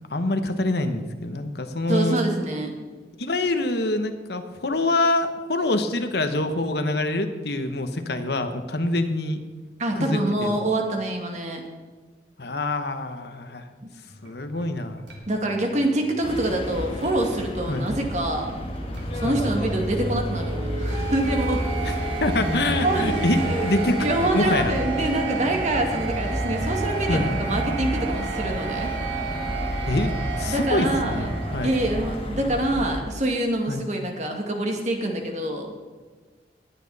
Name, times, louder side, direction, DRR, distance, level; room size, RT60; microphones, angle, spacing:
voice 1, 0.1-2.2 3.2-9.4 9.9-10.6 12.4-13.7 14.2-15.0 17.7-17.9 19.2-19.4 21.8-21.9 22.2-24.7 27.1-27.4 29.9-30.1 30.4-31.7 33.7-33.9, left 2 dB, 60° left, 8 dB, 1.1 m, -25 dB
voice 2, 1.9-2.7 9.8-11.6 15.3-18.6 19.1-22.0 22.8-23.1 23.5-28.9 30.5-31.3 31.6-35.7, right 1 dB, 40° right, 2 dB, 2.0 m, -26 dB
sound 1, 14.1-32.2, right 4 dB, 85° right, 3.3 m, -33 dB
sound 2, 16.2-33.0, equal, 30° left, 1.9 m, -31 dB
20.5 x 8.8 x 4.1 m, 1.4 s
head